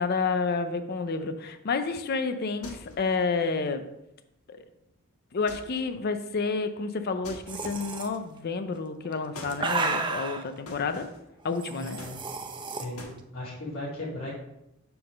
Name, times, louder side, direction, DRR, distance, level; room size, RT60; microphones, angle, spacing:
voice 1, 0.0-3.8 4.5-4.6 5.3-11.1 11.4-12.0, left 4 dB, 45° left, 9 dB, 0.5 m, -30 dB
sound 1, 2.6-3.2 5.5-6.0 7.2-8.1 9.3-9.7 10.7-11.3 12.0-12.6 13.0-13.2, left 2 dB, 90° left, 1.4 m, -44 dB
sound 2, 7.5-8.1 9.1-10.4 11.6-12.8, right 4 dB, 20° right, 0.6 m, -32 dB
voice 2, 11.7-12.2 12.6-14.3, left 1 dB, 65° left, -7 dB, 2.7 m, -37 dB
6.9 x 3.6 x 6.4 m, 0.85 s
head